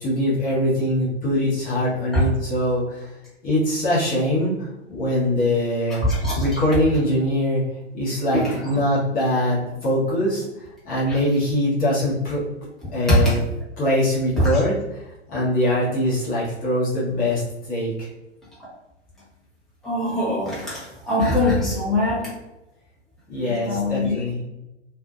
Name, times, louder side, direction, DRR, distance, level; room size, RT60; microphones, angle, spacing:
voice 1, 0.0-3.1 3.4-6.1 6.3-7.6 7.9-12.4 12.9-13.4 13.8-14.7 15.3-18.1 23.3-24.4, left 1 dB, 25° left, -7 dB, 1.0 m, -22 dB
voice 2, 6.0-6.5 8.3-8.8 11.1-11.2 13.1-13.4 14.4-14.6 19.8-22.3 23.7-24.2, left 1 dB, ahead, -9 dB, 1.0 m, -22 dB
2.6 x 2.4 x 2.3 m, 0.95 s
figure-of-eight pair, 100°, 36 cm